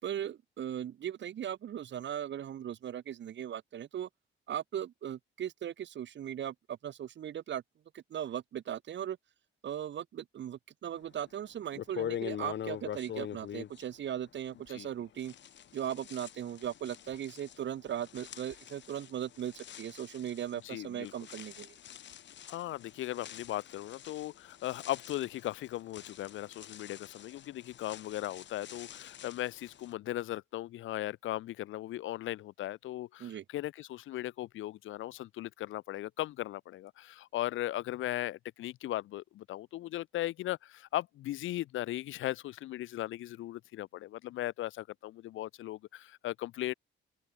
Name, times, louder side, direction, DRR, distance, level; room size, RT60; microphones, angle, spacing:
voice 1, 0.0-4.1 4.5-7.6 7.9-9.2 9.6-15.3 15.7-21.7 33.2-33.4, right 10 dB, 65° right, 5.3 m, -38 dB
sound 1, 11.2-11.3 11.7-14.9 15.2-29.9, left 10 dB, 65° left, 5.6 m, -45 dB
voice 2, 20.6-21.1 22.5-46.7, left 15 dB, 80° left, 1.0 m, -38 dB
open air
cardioid pair, 90°, 20 cm